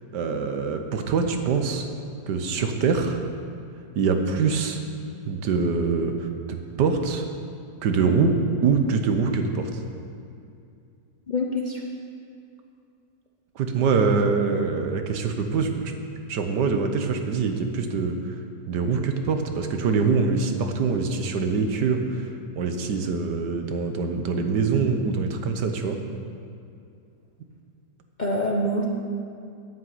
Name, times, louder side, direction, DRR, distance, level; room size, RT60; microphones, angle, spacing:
voice 1, 0.1-1.9 2.3-3.3 3.9-4.8 5.3-7.3 7.8-8.3 8.6-9.8 13.5-15.9 16.3-18.4 18.7-22.3 22.6-26.0, right 5 dB, 75° right, 5 dB, 1.5 m, -24 dB
voice 2, 11.3-11.8 28.2-28.8, left 1 dB, 40° left, -1 dB, 0.7 m, -25 dB
10.0 x 8.6 x 7.8 m, 2.5 s
omnidirectional pair, 1.8 m